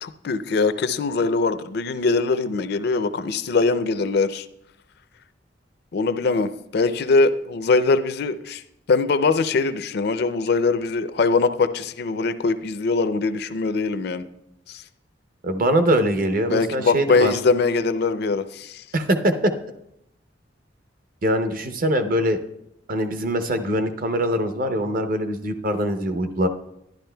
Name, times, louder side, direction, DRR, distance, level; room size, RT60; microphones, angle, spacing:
voice 1, 0.0-4.5 5.9-8.6 8.9-14.3 14.7-14.8 16.5-18.8, left 4 dB, 60° left, 12 dB, 0.4 m, -22 dB
voice 2, 15.4-17.3 18.9-19.5 21.2-22.4 22.9-26.5, right 1 dB, 50° right, 8 dB, 0.7 m, -22 dB
12.0 x 11.0 x 2.2 m, 0.80 s
head